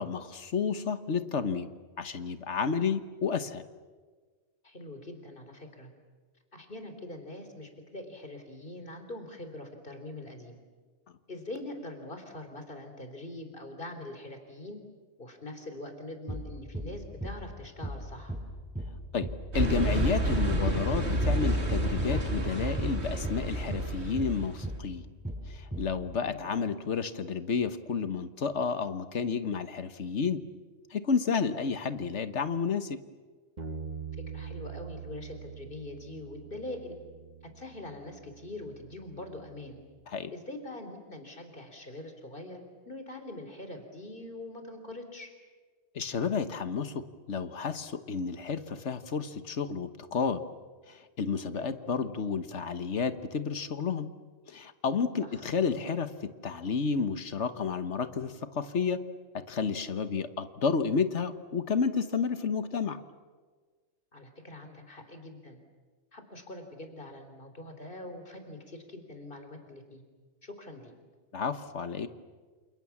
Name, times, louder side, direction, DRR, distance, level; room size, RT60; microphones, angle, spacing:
voice 1, 0.0-1.7 2.0-3.6 19.1-19.3 19.5-25.0 25.5-30.4 30.9-33.0 40.1-40.3 45.9-50.4 50.9-54.1 54.5-59.0 59.3-63.0 71.3-72.1, left 5 dB, 80° left, 11 dB, 1.5 m, -31 dB
voice 2, 4.6-5.9 6.5-10.6 11.3-14.8 15.2-18.3 26.1-26.4 34.3-37.0 37.6-39.8 40.3-42.6 42.9-45.3 51.5-51.7 55.2-55.5 64.1-65.6 66.1-70.0 70.4-70.9, left 2 dB, 50° left, 6 dB, 3.8 m, -43 dB
sound 1, 16.3-16.5 16.7-16.9 17.2-17.4 17.8-18.0 18.3-18.5 18.8-19.0 19.2-19.4 19.7-19.9 20.3-20.5 20.8-21.0 21.2-21.4 21.7-21.9 22.2-22.4 22.8-23.0 23.2-23.4 23.7-23.9 24.2-24.4 24.6-24.8 25.2-25.4 25.7-25.9, right 1 dB, 5° right, 6.7 m, -36 dB
sound 2, 19.5-24.7, right 1 dB, 70° right, 3.1 m, -29 dB
Bass guitar, 33.6-39.8, right 6 dB, 40° right, 1.7 m, -44 dB
28.5 x 28.5 x 7.3 m, 1.4 s
omnidirectional pair, 1.2 m